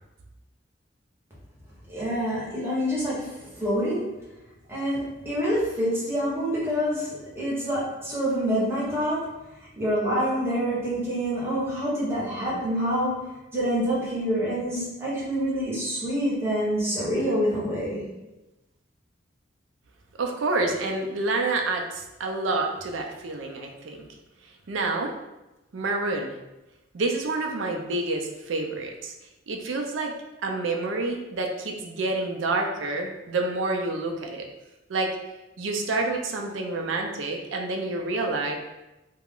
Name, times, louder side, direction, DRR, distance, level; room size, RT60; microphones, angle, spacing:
voice 1, 1.9-4.0 4.7-9.2 9.8-18.1, equal, 15° right, -7 dB, 1.0 m, -27 dB
voice 2, 20.2-24.1 24.7-25.1 25.7-26.4 26.9-29.1 29.5-30.1 30.4-34.5 34.9-35.1 35.6-38.6, right 2 dB, 90° right, 2 dB, 0.4 m, -28 dB
2.4 x 2.1 x 3.5 m, 1.0 s
head